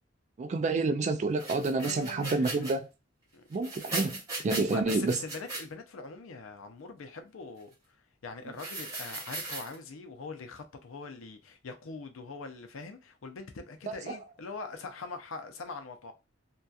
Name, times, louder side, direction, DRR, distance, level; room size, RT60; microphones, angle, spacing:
voice 1, 0.4-2.9 3.5-4.2 4.4-5.2 14.1-14.2, right 3 dB, 35° right, 0.3 m, -28 dB
sound 1, 1.4-2.7 3.5-5.6 8.6-9.7, right 2 dB, 20° right, 1.0 m, -37 dB
voice 2, 1.8-2.6 3.3-3.5 4.5-7.7 8.2-16.1, left 4 dB, 85° left, 0.5 m, -42 dB
2.7 x 2.3 x 2.3 m
head